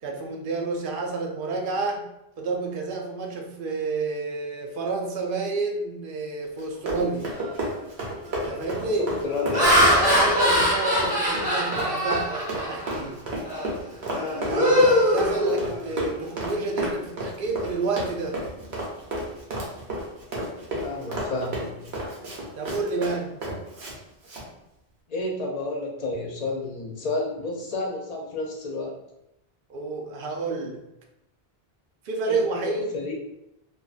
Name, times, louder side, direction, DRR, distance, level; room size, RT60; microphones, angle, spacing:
voice 1, 0.0-2.1 2.4-7.3 8.5-9.1 9.8-13.2 14.4-18.4 22.5-23.4 29.7-30.8 32.0-33.0, right 3 dB, 60° right, 2 dB, 0.6 m, -29 dB
Run, 6.6-23.9 24.2-24.4, right 1 dB, 85° right, 1.1 m, -32 dB
Laughter, 7.4-7.7 8.3-8.6 9.2-13.0 13.4-13.7 14.1-16.0, equal, 10° right, 0.9 m, -22 dB
voice 2, 9.0-9.8 15.3-15.6 20.8-21.7 25.1-28.9 32.2-33.1, left 2 dB, 50° left, -1 dB, 0.5 m, -31 dB
2.6 x 2.4 x 2.4 m, 0.84 s
omnidirectional pair, 1.1 m